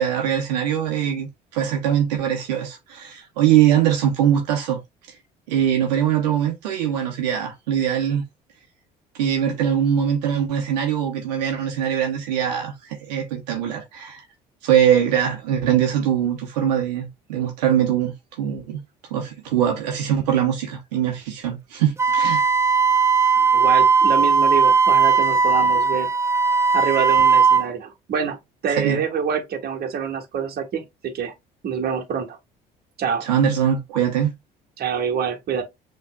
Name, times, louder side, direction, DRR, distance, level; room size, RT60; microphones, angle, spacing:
voice 1, 0.0-4.8 5.5-8.2 9.1-14.2 14.6-18.8 19.1-22.5 28.7-29.0 33.2-34.3, right 9 dB, 85° right, 0.9 m, -22 dB
Wind instrument woodwind instrument, 22.0-27.6, right 5 dB, 15° right, 0.5 m, -17 dB
voice 2, 23.3-26.1 26.7-31.3 31.6-32.4 33.0-33.2 34.8-35.6, right 7 dB, 50° right, 1.3 m, -26 dB
5.7 x 3.2 x 2.2 m
hypercardioid pair, 60°, 20 cm